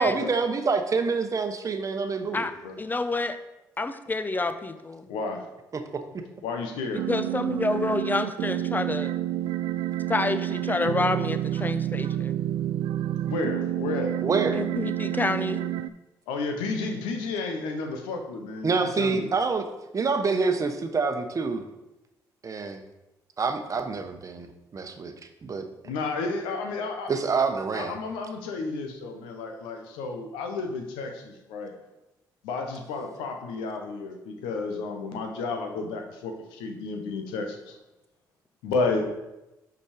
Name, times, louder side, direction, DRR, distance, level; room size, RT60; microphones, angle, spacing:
voice 1, 0.0-2.5 5.7-6.0 14.2-14.6 18.6-19.6 19.9-21.6 22.4-22.8 23.4-25.1 25.4-25.6 27.1-28.0, right 4 dB, 40° right, 7 dB, 0.9 m, -26 dB
voice 2, 2.8-3.4 3.8-5.1 7.1-9.2 10.1-12.4 14.5-15.6, left 3 dB, 20° left, 10 dB, 0.7 m, -28 dB
voice 3, 5.1-5.4 6.4-7.1 13.3-14.2 16.3-19.3 25.8-27.1 27.7-31.7 32.4-37.8 38.6-39.1, left 3 dB, 85° left, 4 dB, 1.0 m, -32 dB
sound 1, 7.0-15.9, right 13 dB, 75° right, 0.3 m, -29 dB
5.3 x 5.3 x 5.0 m, 0.96 s
supercardioid pair, 55°, 8 cm